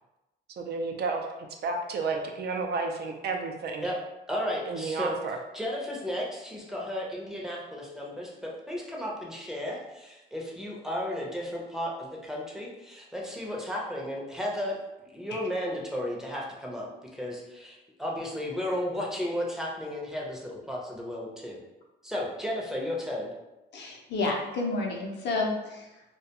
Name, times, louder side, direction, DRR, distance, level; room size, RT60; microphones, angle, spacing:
voice 1, 0.5-1.3 1.6-3.9 4.6-5.4, right 4 dB, 55° right, 3 dB, 0.4 m, -31 dB
voice 2, 4.3-5.1 5.5-14.8 15.1-16.9 17.1-21.6 22.0-23.3, equal, ahead, -3 dB, 0.6 m, -34 dB
voice 3, 23.7-26.0, left 3 dB, 60° left, -1 dB, 0.6 m, -30 dB
2.3 x 2.2 x 2.8 m, 1.0 s
cardioid pair, 90°, 20 cm